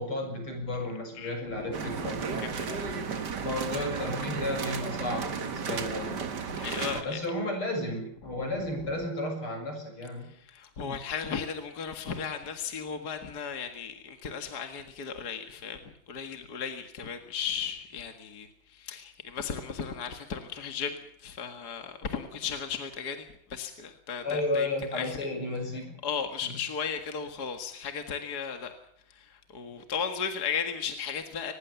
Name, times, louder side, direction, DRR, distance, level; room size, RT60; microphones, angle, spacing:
voice 1, 0.0-2.8 3.4-6.3 7.0-10.3 24.2-26.0 26.4-26.6, left 2 dB, 80° left, 4 dB, 7.8 m, -33 dB
voice 2, 1.2-2.2 2.8-3.2 6.5-7.2 10.3-25.1 26.0-28.7 29.1-31.5, left 6 dB, 50° left, 6 dB, 2.3 m, -36 dB
sound 1, 1.7-7.0, right 6 dB, 55° right, 2.3 m, -34 dB
24.0 x 21.0 x 7.1 m, 0.69 s
omnidirectional pair, 2.3 m